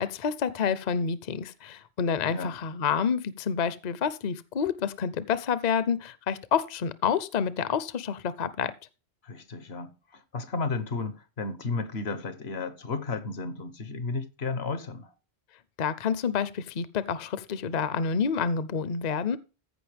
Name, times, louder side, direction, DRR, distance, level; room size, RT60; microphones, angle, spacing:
voice 1, 0.0-8.7 15.8-19.4, left 6 dB, 50° left, 0.6 m, -28 dB
voice 2, 9.2-15.1, left 3 dB, 80° left, 1.3 m, -33 dB
14.5 x 5.4 x 3.4 m
omnidirectional pair, 1.1 m